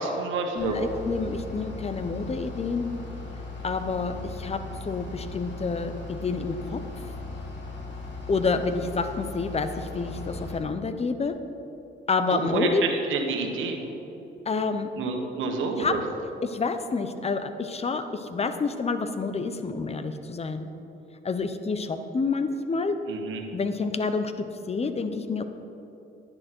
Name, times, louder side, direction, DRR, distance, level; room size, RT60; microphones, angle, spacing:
voice 1, 0.0-0.9 12.3-13.8 15.0-16.0 23.1-23.4, right 4 dB, 80° right, 3 dB, 1.5 m, -28 dB
voice 2, 0.5-2.9 3.6-6.8 8.3-11.3 12.1-12.8 14.5-14.9 15.8-16.0 16.4-20.7 21.2-23.0 23.5-25.4, left 4 dB, 30° left, 9 dB, 0.9 m, -28 dB
Bus / Idling, 0.6-10.6, left 3 dB, 65° left, 2.5 m, -38 dB
10.5 x 10.0 x 4.5 m, 3.0 s
cardioid pair, 90°, 20 cm